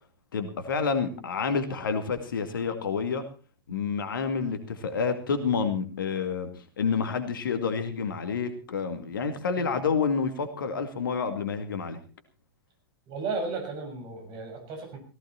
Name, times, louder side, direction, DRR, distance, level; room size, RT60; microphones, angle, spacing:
voice 1, 0.3-3.2 3.7-6.5 6.8-12.0, left 5 dB, 65° left, 9 dB, 2.3 m, -29 dB
voice 2, 13.1-15.0, right 4 dB, 40° right, 4 dB, 6.9 m, -34 dB
17.0 x 16.0 x 4.3 m, 0.35 s
figure-of-eight pair, 95°, 12 cm